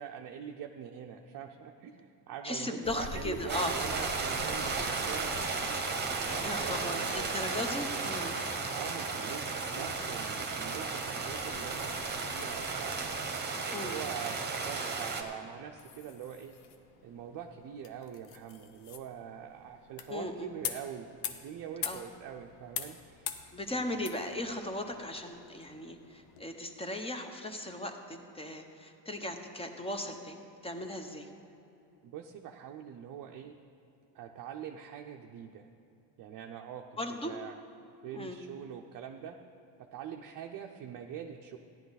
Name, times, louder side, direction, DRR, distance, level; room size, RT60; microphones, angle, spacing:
voice 1, 0.0-5.3 5.7-5.8 6.5-7.3 8.7-13.0 13.6-16.5 17.0-23.4 23.7-24.2 32.0-33.5 34.1-35.7 36.2-37.6 38.0-39.4 39.8-41.6, right 9 dB, 50° right, 2 dB, 0.6 m, -44 dB
voice 2, 2.4-3.7 4.8-4.9 6.4-8.4 13.7-14.0 20.1-20.5 21.8-22.0 23.5-31.3 37.0-37.3 38.1-38.4, left 1 dB, 15° left, 5 dB, 0.9 m, -37 dB
sound 1, 2.8-13.2, left 5 dB, 40° left, 0.7 m, -48 dB
sound 2, 3.5-15.2, right 4 dB, 25° right, 1.1 m, -34 dB
sound 3, 9.6-26.4, left 9 dB, 85° left, 0.9 m, -46 dB
14.5 x 10.5 x 4.1 m, 2.8 s
cardioid pair, 125°, 44 cm